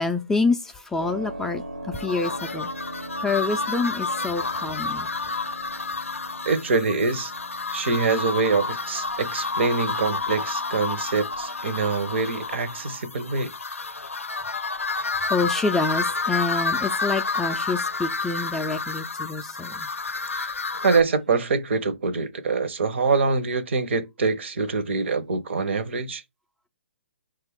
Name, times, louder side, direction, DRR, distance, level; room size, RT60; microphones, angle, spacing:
voice 1, 0.0-2.7 3.2-5.1 15.3-19.9, left 3 dB, 5° left, 0.4 m, -27 dB
Keyboard (musical), 1.0-13.5, right 1 dB, 85° right, 1.0 m, -42 dB
sound 1, 1.9-21.0, left 4 dB, 90° left, 0.5 m, -30 dB
voice 2, 6.5-7.3 7.7-13.5 20.3-20.5 20.8-26.2, right 4 dB, 60° right, 0.8 m, -24 dB
5.6 x 2.4 x 3.5 m
figure-of-eight pair, 135°, 7 cm